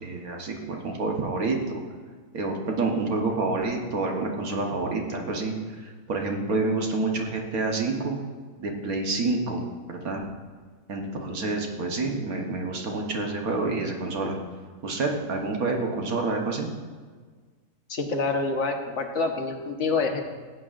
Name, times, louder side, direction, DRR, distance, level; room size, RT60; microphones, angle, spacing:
voice 1, 0.0-1.8 2.3-8.2 8.6-9.6 9.9-10.2 10.9-14.3 14.8-16.7, right 3 dB, 75° right, 1 dB, 1.6 m, -28 dB
voice 2, 17.9-20.2, left 3 dB, 55° left, 3 dB, 1.3 m, -27 dB
15.5 x 9.0 x 2.5 m, 1.5 s
omnidirectional pair, 1.6 m